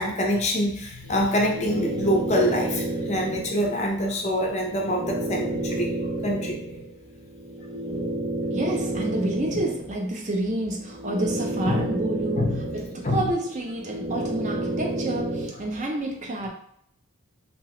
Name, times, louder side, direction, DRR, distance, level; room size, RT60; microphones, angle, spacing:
voice 1, 0.0-5.9 6.2-6.6 11.7-11.9 12.4-12.8 13.0-13.2, equal, 30° left, 1 dB, 0.5 m, -25 dB
sound 1, 1.0-3.8 4.3-10.1 10.5-15.5, right 1 dB, 70° right, 0.7 m, -31 dB
voice 2, 8.5-12.5 12.7-16.5, right 1 dB, 35° right, 1 dB, 0.5 m, -29 dB
2.7 x 2.1 x 3.0 m, 0.72 s
head